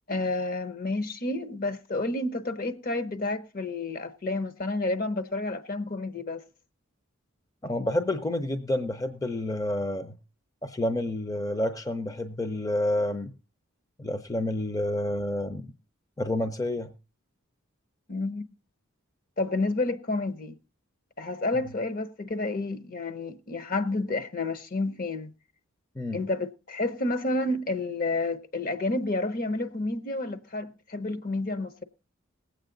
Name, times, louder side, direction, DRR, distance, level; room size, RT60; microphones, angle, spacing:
voice 1, 0.1-6.4 18.1-18.5 19.4-20.5 21.2-25.3 26.1-31.8, left 2 dB, 40° left, 0.9 m, -30 dB
voice 2, 7.6-10.2 10.6-13.3 14.0-15.7 16.2-16.9 26.0-26.2, left 1 dB, 15° left, 0.6 m, -29 dB
19.5 x 8.2 x 3.9 m
head